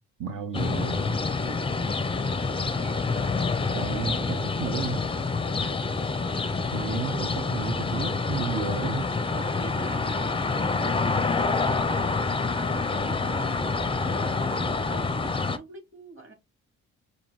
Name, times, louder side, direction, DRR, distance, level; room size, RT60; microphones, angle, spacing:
voice 1, 0.2-1.2 3.7-5.0 6.7-9.1, right 6 dB, 50° right, 0.9 m, -33 dB
sound 1, 0.5-15.6, left 4 dB, 15° left, 0.5 m, -27 dB
voice 2, 1.4-2.0 2.4-3.1 5.5-5.8 9.3-16.3, right 2 dB, 30° right, 3.2 m, -44 dB
5.2 x 2.7 x 3.1 m
hypercardioid pair, 45°, 38 cm